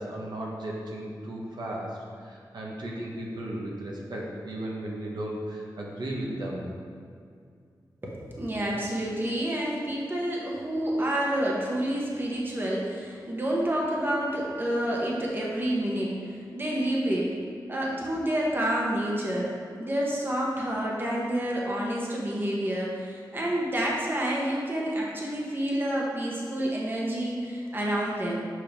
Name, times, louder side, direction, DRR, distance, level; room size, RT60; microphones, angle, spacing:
voice 1, 0.0-6.7, right 1 dB, 70° right, -3 dB, 1.2 m, -35 dB
voice 2, 8.0-17.3 17.7-28.4, right 1 dB, 30° right, -3 dB, 1.3 m, -29 dB
7.7 x 5.6 x 3.5 m, 2.3 s
wide cardioid pair, 95°, 8 cm